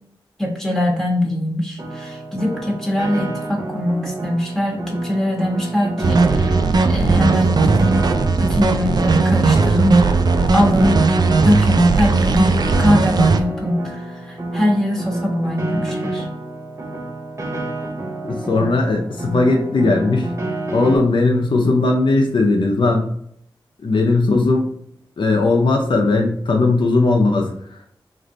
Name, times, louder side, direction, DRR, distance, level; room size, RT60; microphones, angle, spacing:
voice 1, 0.4-6.6 6.9-8.1 8.4-10.2 10.5-11.0 11.4-16.3, left 1 dB, 5° left, -2 dB, 1.3 m, -21 dB
Piano, 1.8-21.0, right 2 dB, 35° right, 0.8 m, -29 dB
sound 1, 6.0-13.4, right 4 dB, 50° right, 0.4 m, -16 dB
voice 2, 18.2-20.3 20.7-23.1 23.8-24.7 25.2-27.8, left 3 dB, 65° left, 1 dB, 0.6 m, -18 dB
3.2 x 2.5 x 3.9 m, 0.69 s
wide cardioid pair, 70°, 9 cm